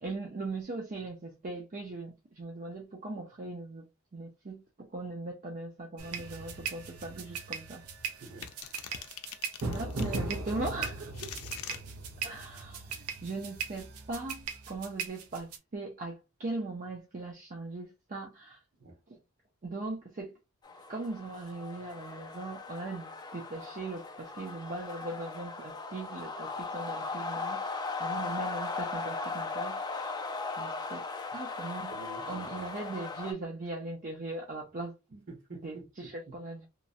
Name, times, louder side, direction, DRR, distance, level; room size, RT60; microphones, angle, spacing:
voice 1, 0.0-7.8 8.9-9.0 9.6-11.3 12.2-18.6 19.1-19.2 19.6-20.4 20.9-30.1 30.6-31.1 31.3-31.9 32.3-35.2 35.6-36.7, right 2 dB, 40° right, 0.5 m, -39 dB
sound 1, 6.0-15.6, right 4 dB, 85° right, 0.6 m, -38 dB
voice 2, 8.2-8.5 18.7-19.0 31.9-32.7 35.3-36.3, right 2 dB, 55° right, 1.2 m, -48 dB
sound 2, 8.4-10.2 10.8-11.8, left 10 dB, 85° left, 0.4 m, -43 dB
sound 3, 20.6-33.3, left 4 dB, 20° left, 0.3 m, -38 dB
2.9 x 2.1 x 2.5 m
head